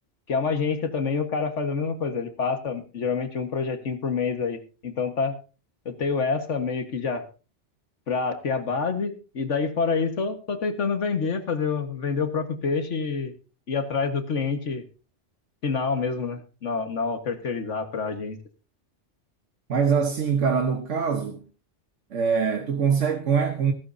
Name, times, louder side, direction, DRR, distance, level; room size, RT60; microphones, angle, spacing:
voice 1, 0.3-5.3 5.9-7.2 8.1-13.3 13.7-14.8 15.6-18.4, left 5 dB, 80° left, 1.9 m, -27 dB
voice 2, 19.7-21.4 22.1-23.7, right 6 dB, 85° right, 1.6 m, -23 dB
16.0 x 15.0 x 2.7 m
omnidirectional pair, 1.2 m